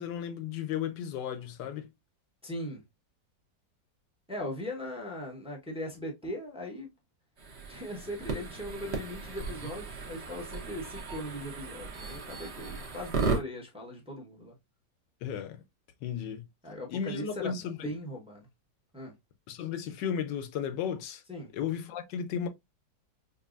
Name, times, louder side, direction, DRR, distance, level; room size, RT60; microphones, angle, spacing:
voice 1, 0.0-1.9 15.2-15.6 16.0-16.4 16.9-18.0 19.5-21.2 21.5-22.5, left 8 dB, 75° left, 1.2 m, -34 dB
voice 2, 2.4-2.8 4.3-6.9 7.7-14.6 16.6-18.5 18.9-19.1 21.3-21.5, left 1 dB, 5° right, 0.5 m, -39 dB
sound 1, 7.4-13.4, right 4 dB, 45° right, 1.0 m, -36 dB
5.3 x 2.2 x 2.4 m
omnidirectional pair, 2.0 m